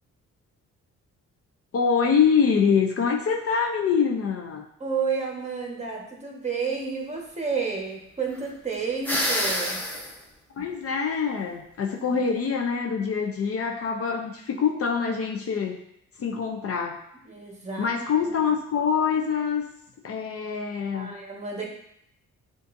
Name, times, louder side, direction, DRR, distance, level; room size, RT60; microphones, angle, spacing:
voice 1, 1.7-4.6 10.6-15.8 16.2-17.0 17.8-19.6 20.0-21.1, left 6 dB, 50° left, 3 dB, 0.6 m, -25 dB
voice 2, 4.8-9.8 17.3-17.9 20.9-21.7, right 5 dB, 20° right, -1 dB, 1.3 m, -30 dB
sound 1, 9.0-10.1, equal, 5° left, 0.9 m, -26 dB
7.7 x 2.6 x 2.6 m, 0.73 s
cardioid pair, 90°, 30 cm